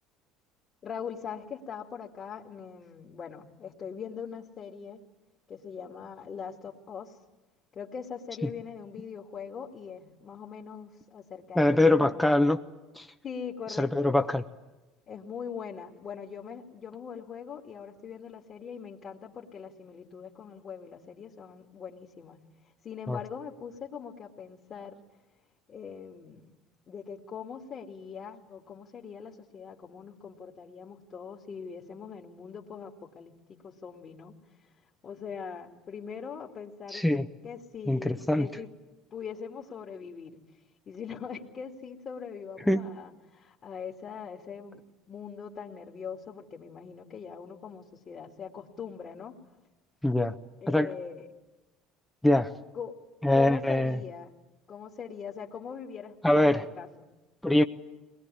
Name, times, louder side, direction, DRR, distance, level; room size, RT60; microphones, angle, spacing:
voice 1, 0.8-5.0 5.5-7.2 7.7-12.1 13.2-14.1 15.1-22.4 22.8-25.0 25.7-26.5 26.9-34.7 35.0-37.1 37.4-38.7 39.1-49.4 50.6-51.3 52.7-53.0 53.3-54.3 54.7-57.1, left 6 dB, 40° left, 0 dB, 2.4 m, -42 dB
voice 2, 11.6-12.6 13.0-13.1 13.8-14.4 23.1-23.2 36.9-37.2 37.9-38.5 42.7-42.8 50.0-50.3 50.7-50.9 52.2-52.5 53.2-54.0 56.2-56.6 57.4-57.6, left 1 dB, 5° left, 6 dB, 1.1 m, -23 dB
22.0 x 19.5 x 9.9 m, 1.1 s
hypercardioid pair, 65°, 0 cm